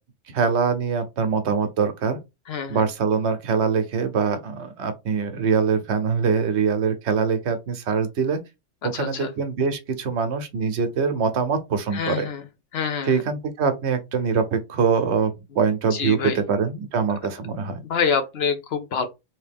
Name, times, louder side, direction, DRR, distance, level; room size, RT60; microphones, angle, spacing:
voice 1, 0.3-2.2 2.7-8.4 8.9-12.3 13.0-17.8, right 5 dB, 70° right, 0.9 m, -23 dB
voice 2, 2.5-2.8 8.8-9.3 11.9-12.4 12.7-13.2 15.9-16.4 17.9-19.1, left 6 dB, 60° left, 0.9 m, -26 dB
3.0 x 2.8 x 3.4 m
omnidirectional pair, 1.3 m